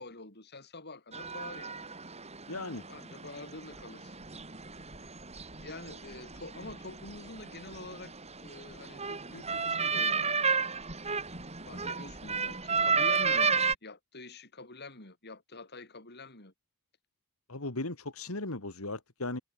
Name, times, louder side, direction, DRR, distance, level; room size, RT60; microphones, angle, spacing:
voice 1, 0.0-1.9 2.9-4.1 5.6-8.1 8.4-10.4 11.7-16.5, left 2 dB, 50° left, 6.7 m, -46 dB
sound 1, 1.1-13.8, right 5 dB, 30° right, 5.2 m, -33 dB
voice 2, 2.5-2.8 17.5-19.4, left 2 dB, 70° left, 2.6 m, -37 dB
head